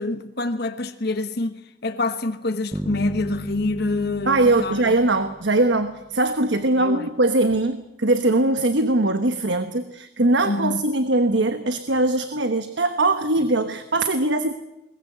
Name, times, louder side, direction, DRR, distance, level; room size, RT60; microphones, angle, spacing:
voice 1, 0.0-4.9 6.8-7.1 10.4-10.8, left 2 dB, 60° left, 1.2 m, -26 dB
sound 1, 2.7-6.4, right 1 dB, ahead, 1.0 m, -36 dB
voice 2, 4.3-14.5, right 2 dB, 75° right, 1.2 m, -21 dB
21.5 x 20.0 x 7.9 m
head